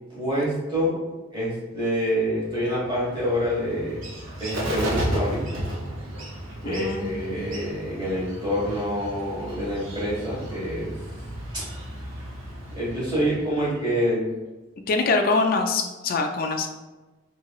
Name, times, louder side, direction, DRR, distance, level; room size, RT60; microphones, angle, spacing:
voice 1, 0.1-1.0 1.3-4.0 4.4-5.4 6.6-10.9 11.5-11.6 12.7-14.2, equal, 20° right, -7 dB, 1.3 m, -27 dB
Bird, 2.5-14.0, equal, 90° right, 0.6 m, -34 dB
voice 2, 6.6-7.5 14.9-16.7, left 3 dB, 45° left, 4 dB, 0.3 m, -24 dB
3.0 x 2.7 x 2.3 m, 1.2 s
head